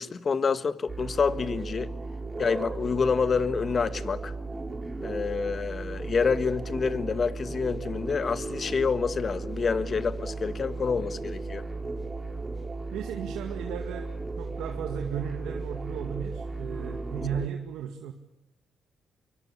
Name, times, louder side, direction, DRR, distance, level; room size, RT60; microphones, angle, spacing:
voice 1, 0.0-1.9 2.4-4.3 5.0-11.6, left 5 dB, 40° left, 1.4 m, -27 dB
sound 1, 0.9-17.5, right 3 dB, 20° right, 5.0 m, -35 dB
voice 2, 12.9-18.1, right 9 dB, 85° right, 2.1 m, -35 dB
25.5 x 23.5 x 8.5 m
cardioid pair, 90°, 0 cm